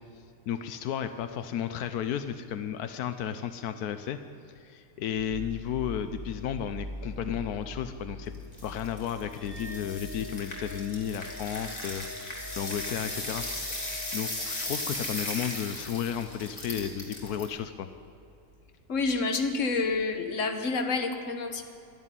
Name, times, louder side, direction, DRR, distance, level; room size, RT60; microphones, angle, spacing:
voice 1, 0.5-4.2 4.5-8.3 8.6-13.4 13.7-17.9, left 9 dB, 90° left, 9 dB, 1.2 m, -33 dB
sound 1, 5.2-19.8, equal, 70° right, 1.9 m, -46 dB
sound 2, 8.3-17.4, left 1 dB, 25° left, 2.9 m, -37 dB
sound 3, 9.3-15.9, left 1 dB, 5° left, 3.8 m, -47 dB
voice 2, 18.9-21.6, left 3 dB, 55° left, 6 dB, 1.7 m, -28 dB
12.5 x 11.0 x 9.9 m, 2.6 s
omnidirectional pair, 1.6 m